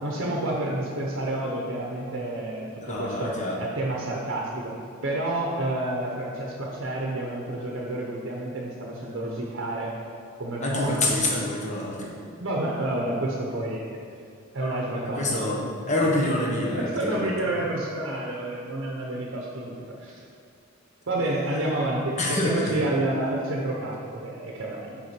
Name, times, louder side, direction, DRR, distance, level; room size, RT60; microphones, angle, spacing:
voice 1, 0.0-9.9 10.4-11.2 12.0-12.1 12.4-14.0 14.5-15.4 16.8-20.2 21.1-25.0, right 1 dB, 60° right, -3 dB, 0.8 m, -29 dB
voice 2, 2.8-3.6 10.6-12.1 15.1-17.3 22.2-22.8, left 1 dB, 35° left, -3 dB, 1.3 m, -26 dB
5.8 x 5.0 x 6.0 m, 2.3 s
head